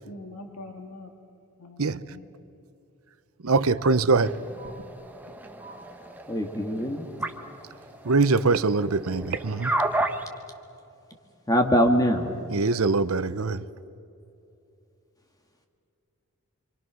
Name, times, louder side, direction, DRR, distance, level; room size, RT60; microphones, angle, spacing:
voice 1, 0.0-1.1 1.6-2.3 4.6-4.7 5.6-5.8, left 1 dB, 90° left, 1.9 m, -43 dB
voice 2, 3.4-4.3 8.0-9.7 12.5-13.6, right 3 dB, 65° right, 0.8 m, -23 dB
sound 1, 4.1-10.3, right 1 dB, 10° right, 1.3 m, -32 dB
voice 3, 6.3-7.1 11.5-12.3, equal, 15° left, 1.8 m, -22 dB
28.0 x 25.0 x 6.2 m
head